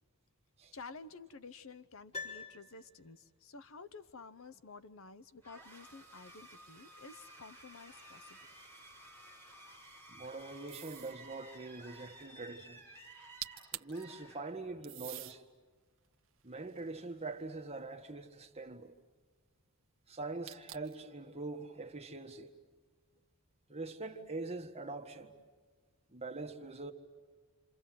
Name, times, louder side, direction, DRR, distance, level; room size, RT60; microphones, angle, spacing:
voice 1, 0.7-8.4, left 4 dB, 60° left, 0.8 m, -52 dB
Piano, 2.1-3.4 3.7-3.8, left 4 dB, 30° left, 4.5 m, -46 dB
sound 1, 5.4-15.0, right 1 dB, 10° left, 3.9 m, -55 dB
voice 2, 10.1-12.8 13.7-15.4 16.4-18.9 20.1-22.5 23.7-25.3 26.1-26.9, right 3 dB, 30° right, 1.7 m, -43 dB
sound 2, 10.7-11.2 13.1-13.2 13.4-14.0 14.8-15.4 16.0-17.5 20.5-21.0, right 13 dB, 60° right, 1.1 m, -46 dB
28.0 x 27.5 x 7.6 m
head